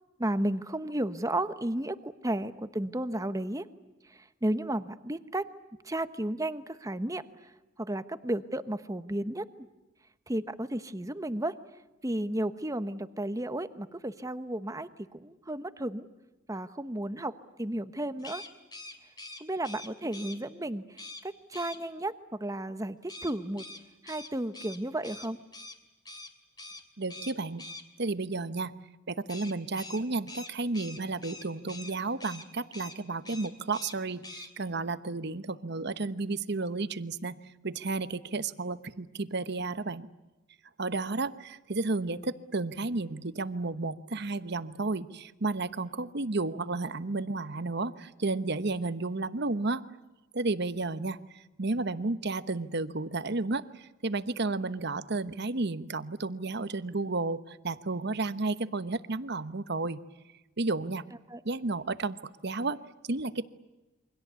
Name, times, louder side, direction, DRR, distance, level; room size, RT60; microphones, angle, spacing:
voice 1, 0.2-3.6 4.1-5.5 5.8-7.2 7.8-9.4 10.3-11.5 12.0-16.1 16.5-17.3 17.6-18.4 19.4-23.6 24.0-25.4 61.3-61.4, right 1 dB, 15° right, 11 dB, 1.1 m, -33 dB
sound 1, 18.2-20.4 21.0-21.2 21.5-21.8 23.1-25.8 26.1-26.3 26.6-26.8 27.1-27.8 29.3-31.9 32.2-32.5 32.7-33.0 33.2-34.0 34.2-34.5, left 2 dB, 20° left, 2.7 m, -44 dB
voice 2, 27.0-27.6 28.0-28.8 29.1-40.1 40.8-49.8 50.3-60.0 60.6-61.0 61.4-63.5, right 3 dB, 55° right, 13 dB, 1.1 m, -32 dB
28.5 x 24.5 x 8.3 m, 1.0 s
head